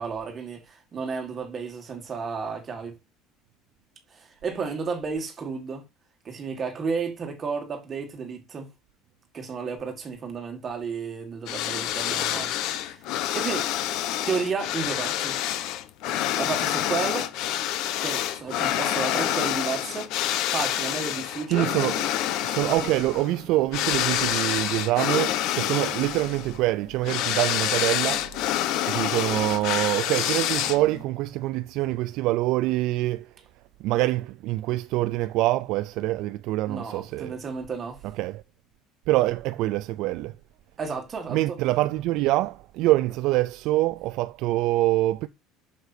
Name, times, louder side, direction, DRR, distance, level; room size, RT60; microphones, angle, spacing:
voice 1, 0.0-2.9 4.1-5.8 6.3-8.7 9.3-13.0 13.3-13.7 14.3-15.4 16.4-17.3 18.0-20.1 20.5-21.7 36.7-38.0 40.8-41.6, right 5 dB, 20° right, 1.8 m, -32 dB
sound 1, 11.5-31.0, left 12 dB, 55° left, 0.8 m, -27 dB
voice 2, 21.5-22.0 22.4-28.3 28.8-33.3 33.8-37.4 38.2-38.4 39.1-40.3 41.3-45.3, right 17 dB, 50° right, 0.4 m, -25 dB
7.9 x 6.6 x 2.7 m
cardioid pair, 175°, 0 cm